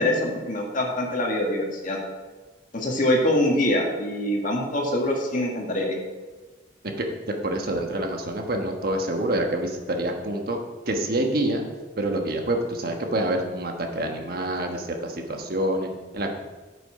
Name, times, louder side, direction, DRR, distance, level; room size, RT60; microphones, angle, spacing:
voice 1, 0.0-2.0 2.7-6.0, left 1 dB, 45° left, 0 dB, 1.8 m, -24 dB
voice 2, 6.8-10.6 10.9-11.6 12.0-16.3, right 1 dB, 55° right, 3 dB, 1.3 m, -27 dB
9.7 x 7.1 x 4.9 m, 1.3 s
head